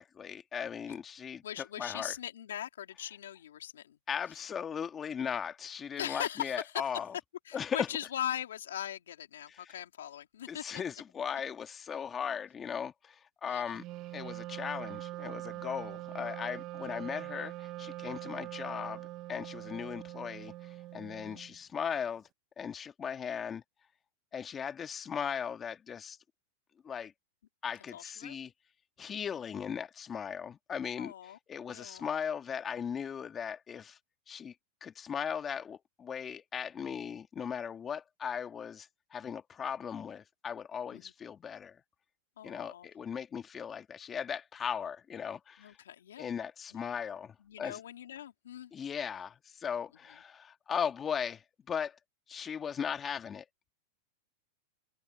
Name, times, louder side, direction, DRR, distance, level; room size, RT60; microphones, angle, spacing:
voice 1, 0.0-2.1 4.1-7.1 7.5-7.9 9.5-9.7 10.5-13.8 14.1-22.3 22.6-23.6 24.3-26.2 26.8-27.1 27.6-28.5 29.0-34.0 34.3-34.5 34.8-41.8 42.4-45.7 46.2-47.8 48.7-52.0 52.3-53.4, left 7 dB, 25° left, 2.0 m, -38 dB
voice 2, 1.4-4.0 4.3-4.4 6.0-6.8 7.4-10.8 13.4-13.8 21.2-21.4 27.9-28.4 31.0-31.4 31.7-32.1 40.9-41.1 42.4-42.9 45.6-46.3 46.7-46.8 47.4-48.7, left 10 dB, 85° left, 3.4 m, -40 dB
Wind instrument woodwind instrument, 13.7-21.6, right 17 dB, 45° right, 1.0 m, -43 dB
hypercardioid pair, 115°, 0 cm